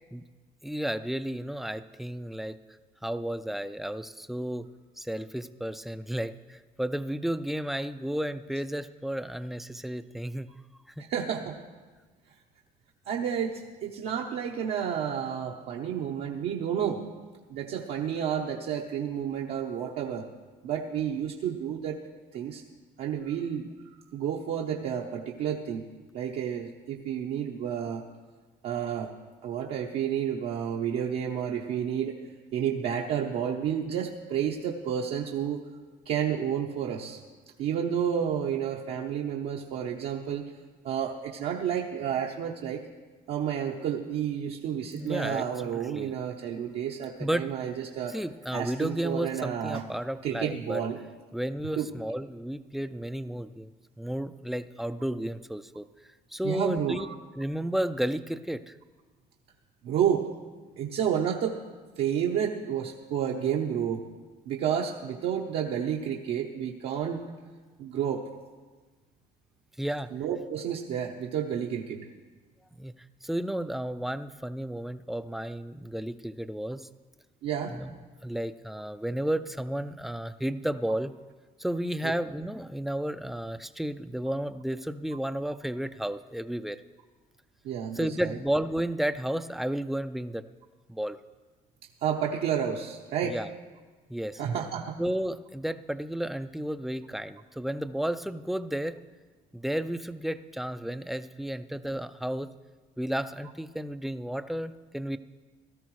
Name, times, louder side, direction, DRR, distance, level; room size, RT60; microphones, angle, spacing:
voice 1, 0.6-2.6 3.0-4.7 5.0-10.5 11.0-11.1 44.9-45.4 45.7-46.1 47.2-47.5 48.1-50.8 51.3-53.7 54.0-55.9 56.3-57.1 57.4-58.7 69.8-70.1 72.8-76.9 77.7-78.0 78.2-81.1 81.6-86.8 87.9-90.4 90.9-91.2 93.2-93.5 94.1-94.4 95.0-99.0 99.5-102.5 103.0-105.2, right 1 dB, ahead, 11 dB, 0.3 m, -32 dB
voice 2, 11.1-11.5 13.1-17.0 17.5-20.3 20.6-22.0 22.3-22.6 23.0-25.8 26.1-28.0 28.6-29.1 29.4-32.2 32.5-35.6 36.0-37.2 37.6-40.5 40.8-42.8 43.3-48.2 48.5-49.8 50.2-51.0 51.8-51.9 56.4-57.2 59.8-60.3 60.8-61.6 62.0-64.0 64.5-67.2 67.8-68.3 70.1-72.1 77.4-77.7 82.0-82.1 87.6-88.4 92.0-93.4 94.4-95.0, right 8 dB, 75° right, -1 dB, 0.8 m, -30 dB
17.0 x 13.5 x 3.1 m, 1.4 s
cardioid pair, 110°, 17 cm